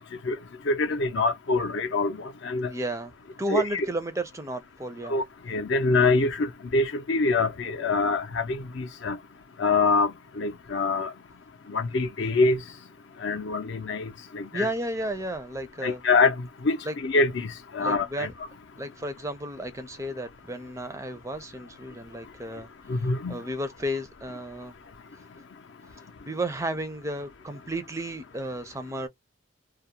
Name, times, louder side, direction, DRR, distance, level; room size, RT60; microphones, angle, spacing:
voice 1, 0.7-2.7 3.5-3.8 5.1-9.2 9.6-10.1 10.4-11.1 11.7-12.6 13.2-14.7 15.8-16.3 16.6-18.3 22.9-23.3, left 3 dB, 60° left, 0.5 m, -25 dB
voice 2, 2.7-3.1 3.4-5.2 14.5-16.0 16.8-17.0 17.8-18.3 18.8-22.7 23.0-24.7 25.9-29.1, right 1 dB, 15° right, 0.4 m, -33 dB
2.3 x 2.0 x 2.8 m
head